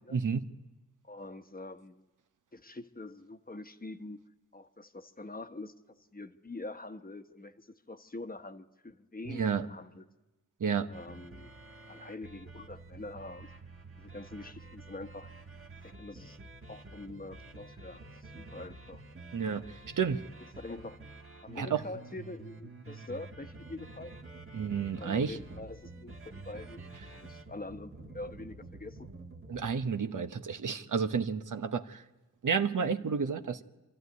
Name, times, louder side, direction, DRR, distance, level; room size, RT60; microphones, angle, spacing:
voice 1, 0.1-0.4 9.3-9.6 10.6-10.9 19.3-20.2 21.5-21.8 24.5-25.4 29.5-32.0 32.4-33.6, right 6 dB, 75° right, 8 dB, 1.0 m, -31 dB
voice 2, 1.1-2.0 2.5-4.2 4.5-5.7 6.1-10.1 10.9-11.5 11.9-13.5 14.0-15.3 15.8-16.4 16.7-19.0 20.6-21.0 21.4-24.2 25.0-26.8 27.1-29.1, left 2 dB, 30° left, 8 dB, 1.1 m, -45 dB
sound 1, 10.9-29.8, right 3 dB, 40° right, 1.6 m, -49 dB
26.5 x 13.0 x 9.6 m, 1.1 s
wide cardioid pair, 75°, 32 cm